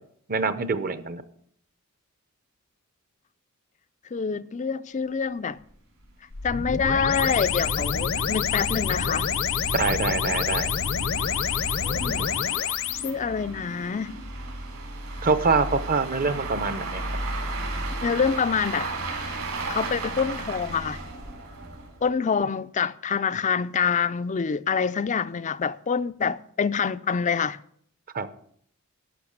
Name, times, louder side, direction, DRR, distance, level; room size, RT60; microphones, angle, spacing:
voice 1, 0.3-1.2 9.7-10.7 15.2-17.0 28.1-28.3, right 4 dB, 40° right, 0.8 m, -25 dB
voice 2, 4.1-5.6 6.4-9.3 11.8-12.3 13.0-14.2 18.0-18.9 19.2-19.4 19.7-21.0 22.0-27.6, left 6 dB, 35° left, 0.4 m, -26 dB
sound 1, 5.6-5.7 6.0-6.1 6.5-6.6 6.9-7.0 7.7-22.1, right 2 dB, 70° right, 3.9 m, -35 dB
sound 2, 6.3-13.1, left 6 dB, 60° left, 0.8 m, -27 dB
12.0 x 5.8 x 8.6 m
head